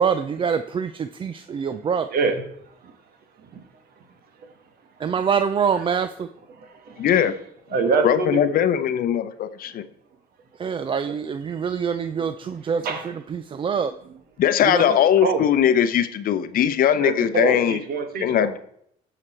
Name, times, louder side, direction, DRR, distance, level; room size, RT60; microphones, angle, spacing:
voice 1, 0.0-2.1 5.0-6.3 10.6-12.8 13.3-13.9 14.6-14.9, right 6 dB, 30° right, 10 dB, 0.4 m, -25 dB
voice 2, 2.1-2.4 5.7-5.8 6.9-7.3 7.7-8.6 11.1-11.2 12.8-13.1 14.0-14.1 14.9-15.5 17.0-18.5, right 4 dB, 65° right, 7 dB, 1.5 m, -25 dB
voice 3, 7.0-7.3 8.0-9.8 14.4-17.8 18.2-18.6, left 9 dB, 60° left, 12 dB, 0.7 m, -20 dB
13.0 x 5.1 x 4.3 m, 0.70 s
cardioid pair, 110°, 17 cm